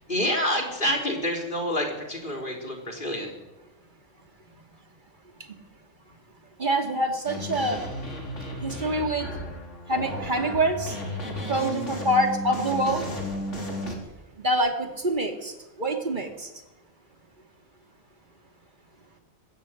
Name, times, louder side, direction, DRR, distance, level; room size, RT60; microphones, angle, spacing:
voice 1, 0.1-3.4, equal, 40° left, 2 dB, 4.1 m, -27 dB
voice 2, 6.6-7.8 8.6-9.3 9.9-11.0 11.5-13.0 14.4-15.5 15.8-16.5, right 1 dB, 40° right, 5 dB, 2.7 m, -25 dB
sound 1, 7.2-13.9, left 1 dB, 70° left, 3.8 m, -34 dB
22.5 x 14.0 x 9.1 m, 1.0 s
omnidirectional pair, 1.3 m